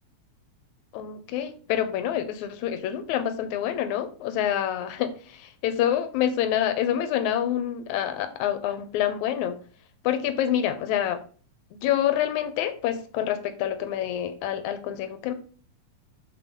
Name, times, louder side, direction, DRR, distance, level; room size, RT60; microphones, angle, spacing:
voice 1, 0.9-9.6 10.0-11.2 11.7-15.3, left 10 dB, 75° left, 10 dB, 1.9 m, -27 dB
6.2 x 4.1 x 5.3 m, 0.41 s
omnidirectional pair, 3.7 m